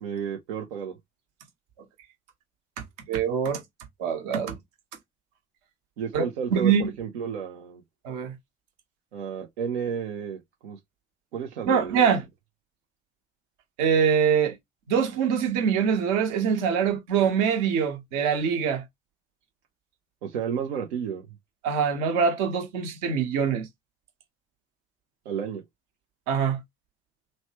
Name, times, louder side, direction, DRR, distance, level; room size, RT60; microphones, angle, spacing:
voice 1, 0.0-0.9 6.0-7.8 9.1-10.8 11.3-12.1 20.2-21.4 25.3-25.6, right 7 dB, 85° right, 0.6 m, -32 dB
voice 2, 3.1-3.6 4.0-4.6 6.1-6.2 6.5-6.9 8.0-8.3 11.6-12.2 13.8-14.5 14.9-18.8 21.6-23.7 26.3-26.6, right 7 dB, 70° right, 1.0 m, -24 dB
3.1 x 2.1 x 2.8 m
hypercardioid pair, 55°, 32 cm